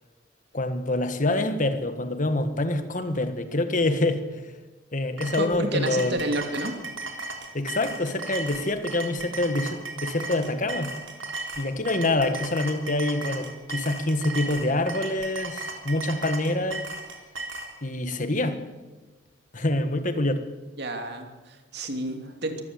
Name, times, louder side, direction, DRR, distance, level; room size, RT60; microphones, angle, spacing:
voice 1, 0.5-4.5 4.9-6.2 7.5-10.9 11.6-16.9 17.8-18.6 19.5-20.4, left 2 dB, 40° left, 9 dB, 1.6 m, -26 dB
sound 1, 5.2-17.7, right 2 dB, 90° right, 3.5 m, -36 dB
voice 2, 5.4-6.8 20.8-22.6, right 2 dB, 60° right, 5 dB, 2.9 m, -30 dB
23.5 x 15.5 x 7.9 m, 1.2 s
head